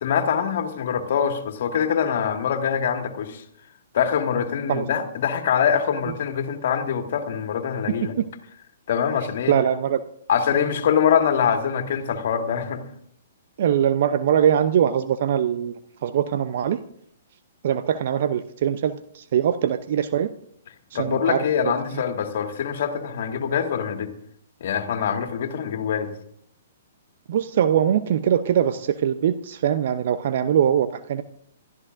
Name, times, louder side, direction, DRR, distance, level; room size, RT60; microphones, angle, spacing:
voice 1, 0.0-3.4 3.9-8.1 8.9-9.6 10.3-12.8 20.9-24.1 24.6-26.1, left 7 dB, 55° left, 6 dB, 2.0 m, -24 dB
voice 2, 7.9-8.3 9.5-10.0 13.6-15.7 16.0-16.8 17.6-20.3 21.0-21.4 21.9-22.0 27.3-31.2, right 9 dB, 50° right, 12 dB, 0.7 m, -22 dB
27.5 x 13.5 x 2.6 m, 0.68 s
figure-of-eight pair, 120°, 0 cm